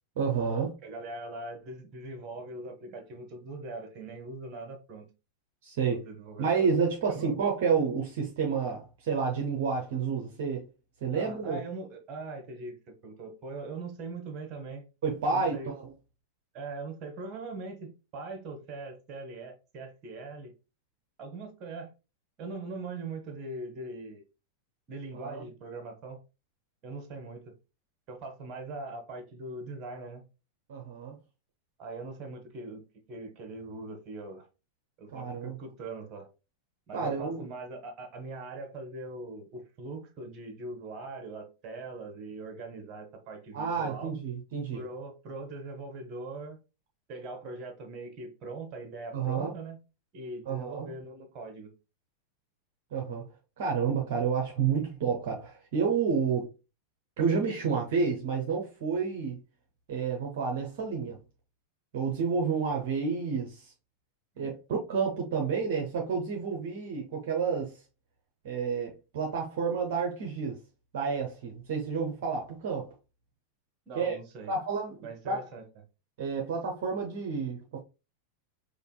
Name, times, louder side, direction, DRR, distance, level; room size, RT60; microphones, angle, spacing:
voice 1, 0.2-0.8 5.6-6.1 6.4-10.7 11.0-11.6 15.0-15.9 25.1-25.4 30.7-31.2 35.1-35.6 36.9-37.4 43.5-44.8 49.1-49.5 50.5-50.9 52.9-53.3 53.6-56.5 57.2-59.4 59.9-61.2 61.9-63.7 64.4-67.8 68.4-70.6 70.9-72.9 73.9-74.2 74.5-75.5 76.2-77.8, right 5 dB, 55° right, 0.8 m, -30 dB
voice 2, 0.8-5.1 6.0-6.7 7.1-7.3 11.1-14.8 15.3-15.7 16.5-20.5 21.2-21.9 22.4-24.2 24.9-26.2 26.8-27.5 28.1-30.2 31.8-34.5 35.0-36.3 36.9-44.1 44.7-46.6 47.1-49.8 50.1-51.7 64.3-64.5 73.9-74.5 75.0-75.6, right 3 dB, 35° right, 1.1 m, -41 dB
5.1 x 2.5 x 2.2 m
figure-of-eight pair, 90°, 0 cm